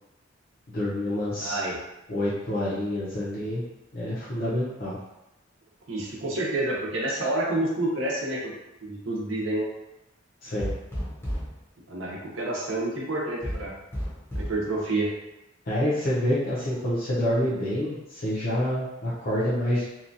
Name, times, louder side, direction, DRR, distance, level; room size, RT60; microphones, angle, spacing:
voice 1, 0.7-1.6 2.1-3.6 3.9-5.0 10.4-10.7 15.7-19.9, left 1 dB, 50° left, -9 dB, 0.6 m, -27 dB
voice 2, 1.4-1.8 5.9-8.5 8.8-9.7 11.9-13.7 14.3-15.1, right 2 dB, 75° right, -4 dB, 0.7 m, -28 dB
sound 1, 10.6-11.6 13.4-14.6, equal, 10° left, 0.7 m, -32 dB
2.8 x 2.3 x 2.6 m, 0.93 s
head